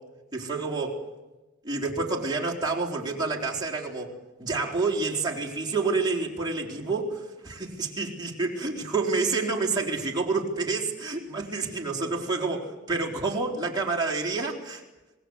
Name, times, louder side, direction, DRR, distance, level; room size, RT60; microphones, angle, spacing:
voice 1, 0.3-1.0 1.6-14.8, right 3 dB, 20° right, -1 dB, 4.2 m, -28 dB
27.0 x 20.0 x 8.2 m, 1.1 s
head